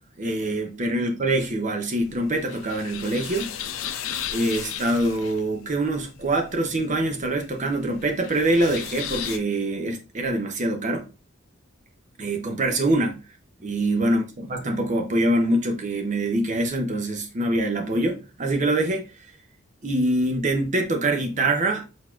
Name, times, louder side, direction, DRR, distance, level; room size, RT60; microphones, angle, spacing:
voice 1, 0.2-3.5 4.3-11.1 12.2-13.2 13.6-14.2 14.5-19.1 19.8-21.8, right 1 dB, 35° right, 0.6 m, -24 dB
sound 1, 2.0-9.4, left 9 dB, 70° left, 0.5 m, -36 dB
4.4 x 4.1 x 2.4 m
head